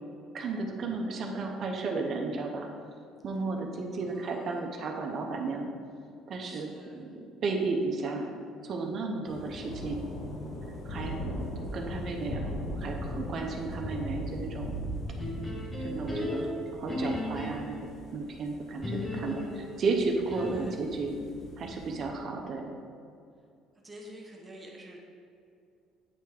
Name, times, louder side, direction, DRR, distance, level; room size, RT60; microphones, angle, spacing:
voice 1, 0.3-2.7 3.2-5.7 6.3-8.3 8.6-10.1 10.8-12.4 12.7-14.7 15.8-17.8 18.1-21.1 21.6-22.7, right 3 dB, 45° right, 2 dB, 0.7 m, -33 dB
voice 2, 3.9-4.6 6.4-7.1 15.9-16.3 20.5-20.7 23.8-25.0, right 1 dB, 15° right, -2 dB, 1.0 m, -49 dB
sound 1, 9.3-22.0, equal, 45° left, 0.9 m, -39 dB
sound 2, 15.2-17.9 18.8-20.8, left 1 dB, 15° left, 1.1 m, -35 dB
8.2 x 3.4 x 4.8 m, 2.4 s
cardioid pair, 125°, 0 cm